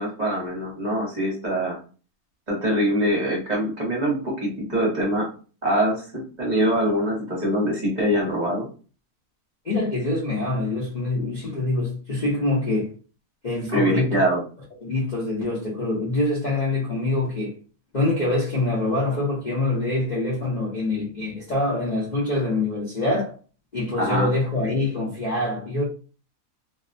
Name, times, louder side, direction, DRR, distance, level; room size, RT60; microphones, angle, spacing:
voice 1, 0.0-1.8 2.5-5.3 5.6-8.7 13.7-14.4 24.0-24.3, equal, 35° right, 0.9 m, -23 dB
voice 2, 9.6-12.9 13.4-14.2 14.8-17.6 17.9-23.3 23.7-25.8, left 2 dB, 45° left, 0.6 m, -25 dB
2.5 x 2.1 x 2.5 m
omnidirectional pair, 1.5 m